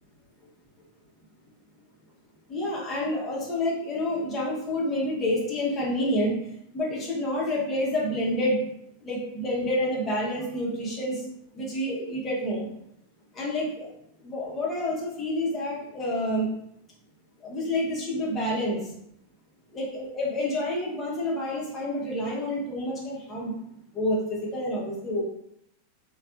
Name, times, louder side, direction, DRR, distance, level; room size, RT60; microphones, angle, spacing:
voice 1, 2.5-6.3 6.7-8.6 9.0-11.2 11.5-12.7 13.3-13.9 14.2-16.5 17.4-18.9 19.7-23.6 23.9-25.2, left 1 dB, 25° left, -5 dB, 0.8 m, -28 dB
3.3 x 2.3 x 2.4 m, 0.75 s
figure-of-eight pair, 90°, 0 cm